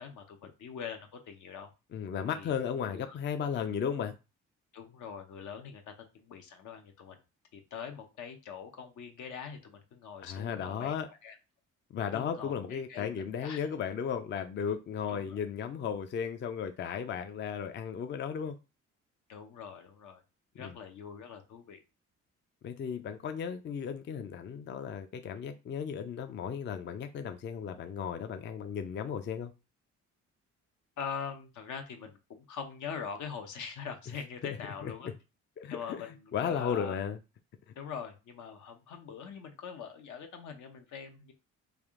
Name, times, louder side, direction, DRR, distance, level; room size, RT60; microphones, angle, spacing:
voice 1, 0.0-1.7 2.3-3.2 4.7-5.9 6.2-7.2 7.5-10.9 11.2-11.4 12.1-13.1 13.4-13.7 15.1-15.4 19.3-20.2 20.5-21.8 31.0-35.1 35.7-37.0 37.7-41.3, left 6 dB, 75° left, 0.8 m, -43 dB
voice 2, 1.9-4.2 10.2-11.1 11.9-18.6 20.6-20.8 22.6-29.5 34.8-35.1 35.6-36.0 36.3-37.2 37.7-37.8, left 7 dB, 40° left, 0.4 m, -35 dB
3.4 x 2.4 x 3.6 m
cardioid pair, 90°, 30 cm